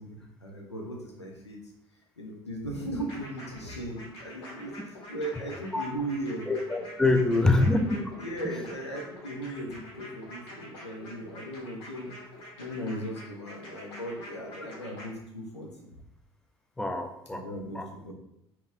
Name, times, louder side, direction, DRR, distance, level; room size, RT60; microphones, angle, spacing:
voice 1, 0.0-1.6 2.2-6.5 7.2-7.6 8.2-12.1 12.6-15.9 17.3-18.1, right 1 dB, 90° left, 0 dB, 0.6 m, -37 dB
sound 1, 3.1-15.1, left 1 dB, 65° left, 1.1 m, -46 dB
voice 2, 6.5-8.1 16.8-17.4 17.7-17.9, left 2 dB, 5° left, 6 dB, 0.4 m, -25 dB
4.0 x 2.3 x 3.5 m, 0.82 s
figure-of-eight pair, 60°, 14 cm